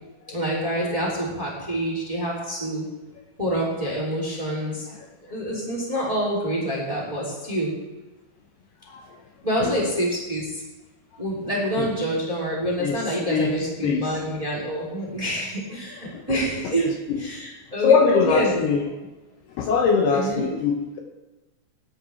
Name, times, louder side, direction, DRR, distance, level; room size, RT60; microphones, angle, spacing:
voice 1, 0.3-2.8 3.4-4.9 5.3-7.7 9.4-10.6 11.2-16.9 17.2-18.6 20.1-20.5, right 1 dB, 10° right, -4 dB, 2.2 m, -27 dB
voice 2, 13.8-14.2 16.1-16.2 16.6-17.2 17.8-18.8 19.6-21.0, left 6 dB, 75° left, 1 dB, 2.6 m, -22 dB
20.0 x 10.5 x 3.5 m, 1.1 s
omnidirectional pair, 5.3 m